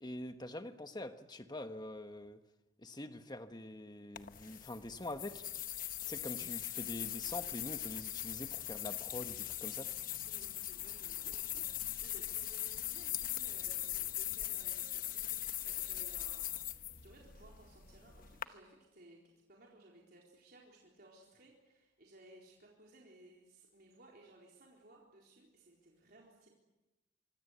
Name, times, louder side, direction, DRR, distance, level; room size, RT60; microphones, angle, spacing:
voice 1, 0.0-2.4 2.8-5.4 6.1-9.9, left 1 dB, 20° left, 8 dB, 1.3 m, -45 dB
sound 1, 4.2-18.4, left 12 dB, 45° left, 1.0 m, -40 dB
voice 2, 10.3-19.2 19.5-26.5, right 2 dB, 50° right, -2 dB, 4.2 m, -60 dB
25.5 x 24.5 x 8.2 m, 1.0 s
head